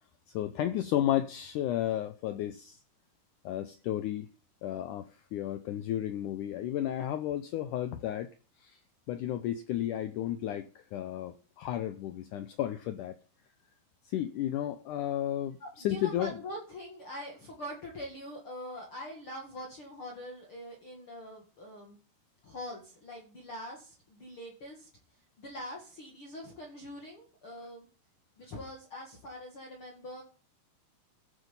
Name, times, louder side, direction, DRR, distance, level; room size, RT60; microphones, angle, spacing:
voice 1, 0.3-2.8 3.5-4.3 4.6-8.3 8.6-8.8 9.1-13.2 14.0-16.3, left 12 dB, 85° left, 1.8 m, -33 dB
voice 2, 15.6-22.0 22.4-24.9 25.4-27.9 28.4-30.2, left 1 dB, 40° left, 2.3 m, -43 dB
14.5 x 8.1 x 5.4 m
omnidirectional pair, 4.4 m